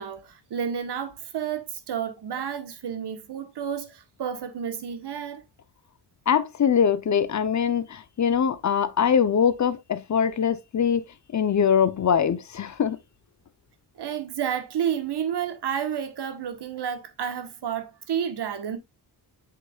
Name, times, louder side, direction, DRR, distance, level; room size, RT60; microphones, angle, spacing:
voice 1, 0.0-5.4 14.0-18.8, right 8 dB, 70° right, 1.2 m, -31 dB
voice 2, 6.3-11.0 11.3-13.0, left 7 dB, 45° left, 0.6 m, -22 dB
8.3 x 5.9 x 2.3 m
wide cardioid pair, 155°, 42 cm